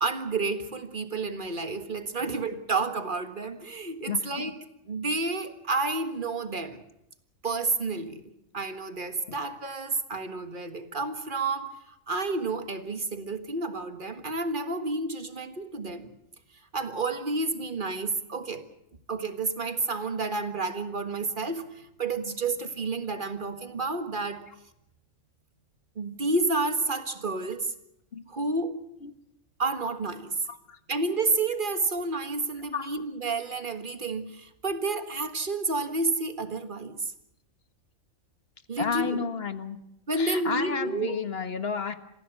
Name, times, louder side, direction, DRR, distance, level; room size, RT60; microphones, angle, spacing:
voice 1, 0.0-4.6 4.9-6.8 7.4-11.8 12.1-16.1 16.7-18.7 19.1-24.5 26.0-27.7 28.3-28.8 29.6-30.4 30.9-37.1 38.7-39.2 40.1-41.2, right 3 dB, 35° right, 8 dB, 1.8 m, -30 dB
voice 2, 4.1-4.5 28.1-28.2 29.0-29.1 30.5-30.8 32.7-32.9 38.8-39.8 40.2-41.9, left 6 dB, 45° left, 10 dB, 1.6 m, -32 dB
27.0 x 15.5 x 8.3 m, 0.83 s
omnidirectional pair, 1.5 m